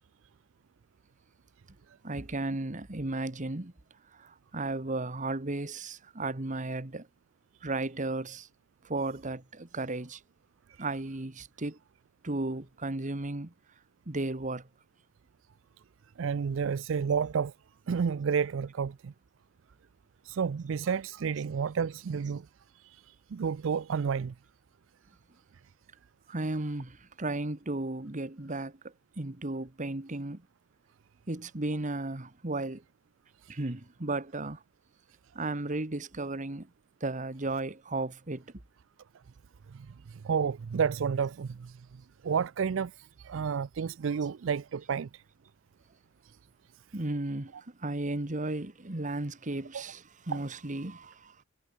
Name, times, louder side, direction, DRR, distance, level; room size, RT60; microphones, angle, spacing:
voice 1, 2.0-3.7 4.1-7.1 7.6-8.5 8.8-10.2 10.8-11.8 12.2-13.5 14.0-14.7 26.3-30.5 31.3-32.8 33.5-34.6 35.3-36.7 37.0-38.5 46.9-51.4, right 2 dB, 40° right, 1.5 m, -34 dB
voice 2, 16.2-17.5 17.9-19.1 20.3-22.5 23.3-24.3 39.7-41.8 42.2-45.2, right 6 dB, 70° right, 0.4 m, -30 dB
head